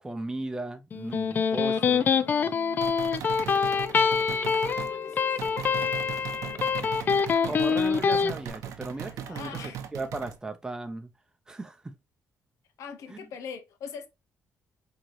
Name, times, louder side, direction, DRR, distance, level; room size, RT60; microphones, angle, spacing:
voice 1, 0.0-2.1 7.4-11.1 11.5-11.9 13.1-13.2, right 2 dB, 10° right, 0.6 m, -36 dB
Electric guitar, 0.9-8.3, left 6 dB, 35° left, 0.3 m, -25 dB
voice 2, 1.5-2.8 4.4-5.5 6.4-6.9 7.4-7.9 8.9-9.8 12.8-14.1, left 7 dB, 80° left, 0.8 m, -44 dB
sound 1, 2.8-5.0 5.4-10.4, right 9 dB, 85° right, 0.7 m, -38 dB
4.6 x 2.8 x 2.5 m
cardioid pair, 140°, 5 cm